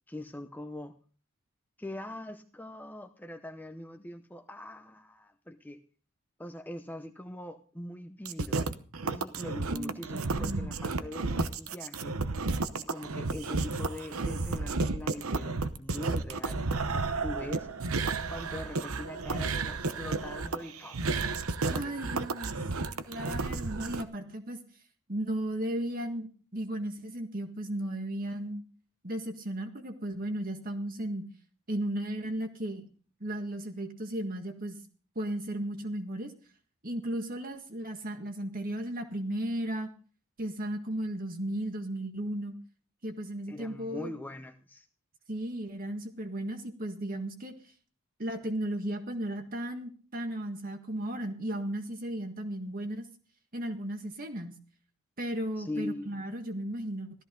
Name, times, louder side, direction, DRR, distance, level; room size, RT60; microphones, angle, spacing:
voice 1, 0.1-1.0 1.8-5.8 6.4-8.6 9.0-12.2 12.7-17.7 18.3-21.1 21.7-22.0 43.5-44.9 55.6-56.2, left 1 dB, 10° left, 6 dB, 0.7 m, -42 dB
sound 1, 8.2-24.0, right 3 dB, 85° right, 0.9 m, -32 dB
voice 2, 9.7-10.7 21.7-22.6 23.1-24.6 25.1-28.6 29.0-31.3 31.7-32.9 33.2-34.8 35.2-36.3 36.8-39.9 40.4-42.5 43.0-44.1 45.3-47.5 48.2-53.1 53.5-54.6 55.2-57.2, right 1 dB, 40° right, 5 dB, 1.7 m, -35 dB
15.5 x 13.5 x 3.8 m, 0.41 s
head